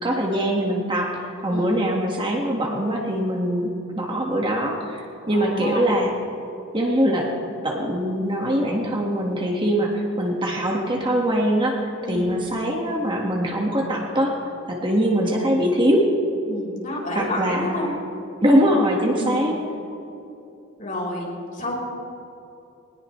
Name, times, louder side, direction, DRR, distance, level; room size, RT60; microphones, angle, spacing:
voice 1, 0.0-6.1 6.7-7.3 7.6-14.4 14.7-16.1 17.2-17.9 18.4-19.5, equal, 25° right, -1 dB, 1.8 m, -22 dB
voice 2, 5.3-5.9 12.0-12.3 16.5-17.9 19.1-19.4 20.8-21.8, left 1 dB, 40° left, -3 dB, 4.8 m, -30 dB
22.0 x 19.5 x 3.3 m, 2.9 s
head